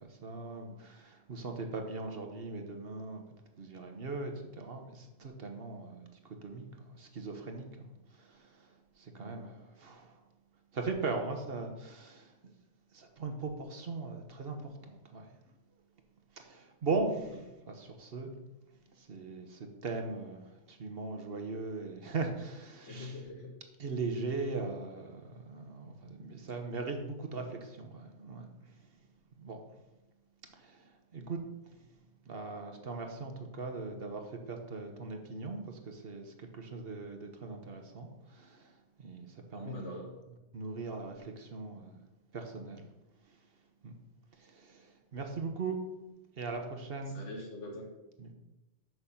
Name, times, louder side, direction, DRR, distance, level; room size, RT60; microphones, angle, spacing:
voice 1, 0.0-3.2 3.6-7.9 8.2-8.7 9.0-10.1 10.7-12.3 12.9-15.3 16.4-18.3 19.0-23.2 23.8-28.5 29.4-29.6 30.6-31.4 32.3-38.7 39.0-40.0 40.5-42.0 42.3-42.9 43.8-43.9 44.4-45.8 46.4-47.1 48.2-48.3, right 3 dB, 55° right, 4 dB, 1.2 m, -39 dB
voice 2, 22.9-23.5 39.5-40.1 47.1-47.9, left 2 dB, 75° left, -1 dB, 2.3 m, -43 dB
6.6 x 6.3 x 5.7 m, 1.0 s
omnidirectional pair, 1.2 m